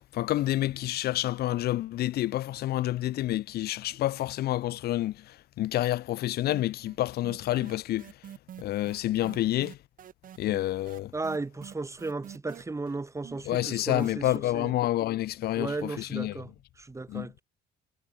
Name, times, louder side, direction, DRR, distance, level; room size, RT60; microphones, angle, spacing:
voice 1, 0.1-5.1 5.6-8.1 8.6-9.8 10.4-11.1 13.5-16.4 17.1-17.3, left 14 dB, 70° left, 1.1 m, -28 dB
sound 1, 6.5-7.0 7.2-14.4, right 10 dB, 55° right, 3.1 m, -46 dB
voice 2, 11.1-14.7 15.6-16.5 16.8-17.4, right 3 dB, 15° right, 3.6 m, -35 dB
cardioid pair, 110°, 17 cm